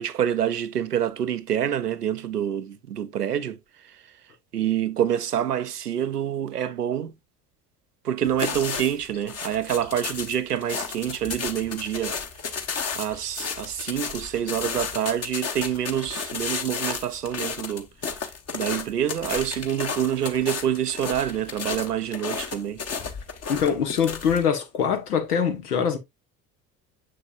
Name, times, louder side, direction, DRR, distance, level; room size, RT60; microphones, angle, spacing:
voice 1, 0.0-3.6 3.8-4.0 4.5-7.1 8.0-12.2 12.9-17.9 18.5-22.8, right 10 dB, 90° right, 0.6 m, -27 dB
sound 1, 8.2-24.4, left 6 dB, 35° left, 1.3 m, -33 dB
voice 2, 23.5-26.0, left 7 dB, 80° left, 1.4 m, -23 dB
6.9 x 6.4 x 2.5 m
figure-of-eight pair, 60°, 45 cm